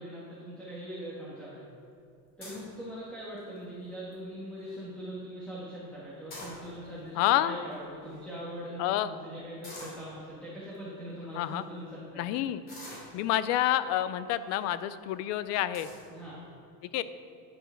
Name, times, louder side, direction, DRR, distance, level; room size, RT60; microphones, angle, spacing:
voice 1, 0.0-1.7 2.4-12.3 16.1-16.4, equal, 5° left, -8 dB, 1.6 m, -41 dB
sound 1, 2.4-2.7 3.4-3.7 4.1-4.2 4.4-4.8 6.1-7.0 7.7-7.8 8.0-8.2 9.6-10.1 10.7-10.8 11.4-11.6 12.7-13.5 14.3-14.6 15.1-15.2 15.7-16.1, left 1 dB, 25° left, 2.9 m, -46 dB
voice 2, 7.2-7.6 8.8-9.1 11.3-11.6 12.2-12.6 13.1-15.9 16.9-17.0, left 13 dB, 45° left, 14 dB, 0.4 m, -28 dB
11.0 x 6.9 x 5.7 m, 2.5 s
cardioid pair, 175°, 36 cm